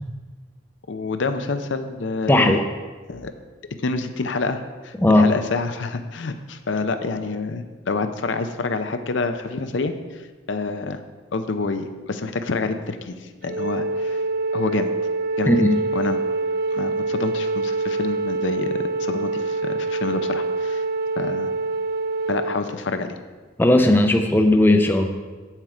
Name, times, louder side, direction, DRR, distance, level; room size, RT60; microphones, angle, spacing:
voice 1, 0.9-2.6 3.1-3.3 3.8-10.2 10.5-11.0 11.3-14.2 14.5-14.9 15.4-15.5 15.9-16.2 16.7-20.8 21.2-21.5 22.3-23.2, left 3 dB, 70° left, 8 dB, 0.6 m, -27 dB
voice 2, 2.3-2.6 5.0-5.3 15.5-15.8 23.6-25.1, left 1 dB, 10° left, 5 dB, 0.5 m, -16 dB
Wind instrument woodwind instrument, 13.4-22.6, right 3 dB, 50° right, 0.4 m, -25 dB
7.9 x 7.4 x 4.9 m, 1.4 s
head